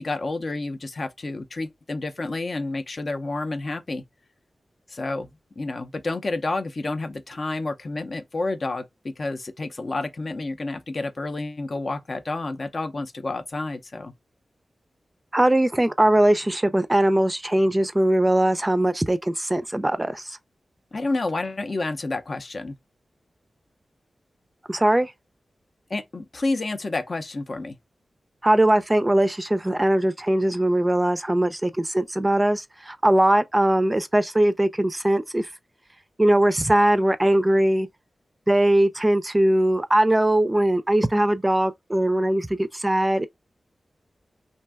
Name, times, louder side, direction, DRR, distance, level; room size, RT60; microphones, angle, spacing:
voice 1, 0.0-4.0 4.9-5.3 5.6-14.1 20.9-22.8 25.9-27.8, left 2 dB, 55° left, 0.5 m, -29 dB
voice 2, 15.3-20.4 24.7-25.1 28.4-35.5 36.2-37.9 38.5-43.3, right 1 dB, 25° right, 0.4 m, -20 dB
2.6 x 2.2 x 3.3 m
cardioid pair, 40°, 0 cm